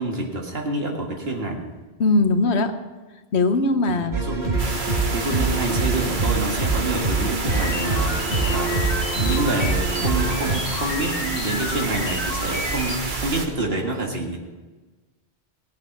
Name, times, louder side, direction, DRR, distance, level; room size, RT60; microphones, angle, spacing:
voice 1, 0.0-1.7 3.9-4.7 5.1-14.4, right 2 dB, 70° right, 1 dB, 2.1 m, -27 dB
voice 2, 2.0-2.7 3.3-4.1, left 2 dB, 85° left, 8 dB, 1.3 m, -20 dB
sound 1, 4.1-10.6, right 3 dB, 85° right, 2.3 m, -25 dB
sound 2, 4.6-13.5, right 3 dB, 50° right, 1.4 m, -29 dB
sound 3, 7.5-13.0, left 3 dB, 60° left, 1.4 m, -32 dB
17.0 x 8.1 x 5.9 m, 1.3 s
omnidirectional pair, 1.1 m